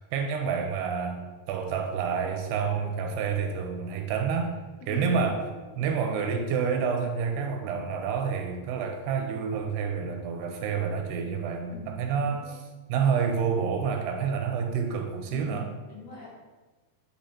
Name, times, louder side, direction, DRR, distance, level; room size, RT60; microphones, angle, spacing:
voice 1, 0.1-4.5 4.9-5.4 5.8-12.6 12.9-15.7, right 6 dB, 80° right, 4 dB, 2.6 m, -28 dB
voice 2, 4.8-5.5 11.7-11.9 12.2-12.6 15.3-16.3, left 4 dB, 70° left, -7 dB, 1.5 m, -43 dB
9.9 x 3.3 x 4.3 m, 1.3 s
omnidirectional pair, 4.8 m